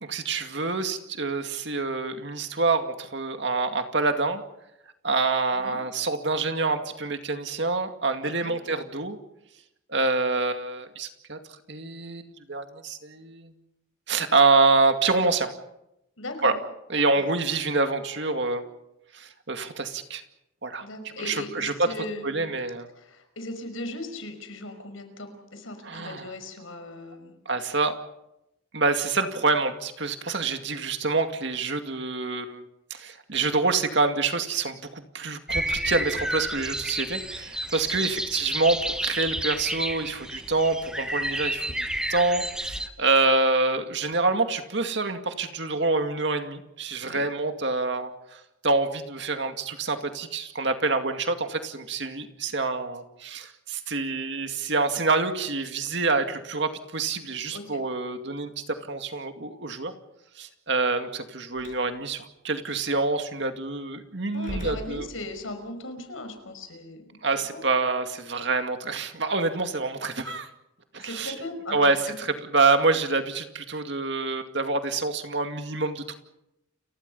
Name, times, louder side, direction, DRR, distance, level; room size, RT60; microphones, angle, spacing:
voice 1, 0.0-4.4 5.0-9.2 9.9-11.4 11.7-13.5 14.1-15.5 16.4-16.5 16.9-18.6 19.1-20.2 20.6-20.9 21.2-21.9 22.2-22.9 25.8-26.3 27.5-28.0 28.7-32.6 32.9-59.9 60.4-65.1 67.2-70.5 70.9-71.3 71.7-76.1, right 3 dB, 60° right, 6 dB, 2.3 m, -26 dB
voice 2, 8.2-8.5 16.2-16.5 17.1-17.3 20.8-22.5 22.9-27.4 38.0-38.2 47.0-47.2 57.5-57.8 64.3-67.6 71.0-72.0, left 2 dB, 85° left, 7 dB, 5.4 m, -38 dB
sound 1, 35.5-42.9, right 1 dB, 5° right, 1.0 m, -30 dB
Slam, 61.5-61.9 62.8-63.0 64.3-65.6, equal, 40° left, 6.0 m, -39 dB
30.0 x 24.0 x 5.5 m, 0.88 s
head